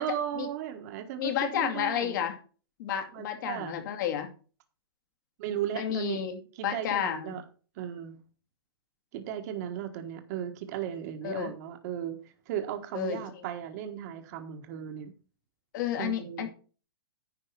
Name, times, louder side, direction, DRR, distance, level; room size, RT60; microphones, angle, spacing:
voice 1, 0.0-2.3 3.1-3.8 5.4-6.2 6.5-7.4 7.8-8.2 9.1-12.2 12.5-15.1 16.0-16.5, right 10 dB, 45° right, 7 dB, 1.4 m, -36 dB
voice 2, 1.2-2.4 2.8-4.3 5.8-7.3 11.2-11.5 12.9-13.2 15.7-16.5, left 9 dB, 50° left, 5 dB, 2.3 m, -31 dB
10.0 x 4.7 x 5.9 m, 0.38 s
hypercardioid pair, 145°, 13 cm